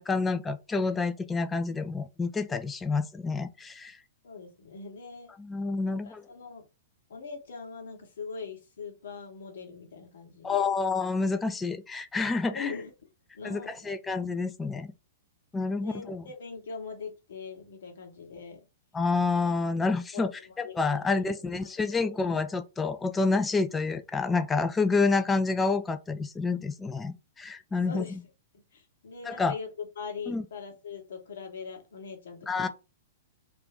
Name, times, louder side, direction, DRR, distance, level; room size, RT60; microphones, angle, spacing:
voice 1, 0.0-4.0 5.4-6.2 10.4-12.7 13.4-14.9 15.5-16.2 18.9-20.3 20.6-28.0 29.3-29.5 30.3-30.4 32.5-32.7, left 4 dB, 15° left, 0.4 m, -28 dB
voice 2, 4.2-5.3 5.8-6.7 7.1-10.6 12.5-13.1 13.3-13.9 15.8-18.6 20.1-22.3 27.8-28.2 28.5-32.7, left 5 dB, 70° left, 1.1 m, -42 dB
2.5 x 2.2 x 3.4 m
hypercardioid pair, 110°, 0 cm